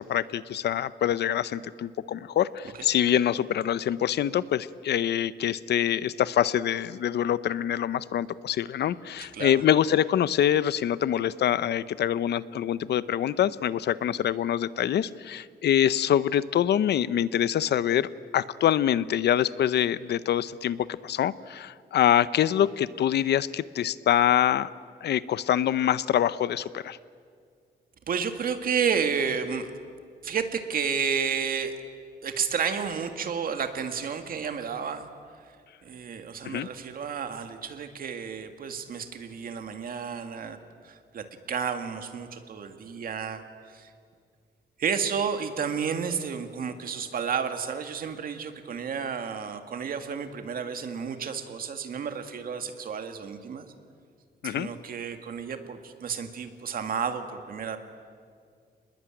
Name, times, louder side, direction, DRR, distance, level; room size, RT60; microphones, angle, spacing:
voice 1, 0.0-24.7 25.0-27.0 36.4-36.7 54.4-54.7, left 10 dB, 70° left, 17 dB, 0.7 m, -25 dB
voice 2, 9.2-9.6 28.1-29.7 30.2-31.7 32.2-35.1 35.4-35.5 35.8-40.6 40.8-43.4 43.7-43.9 44.8-53.7 54.4-57.8, right 6 dB, 55° right, 7 dB, 2.0 m, -31 dB
29.0 x 21.0 x 9.0 m, 2.1 s
wide cardioid pair, 180°, 18 cm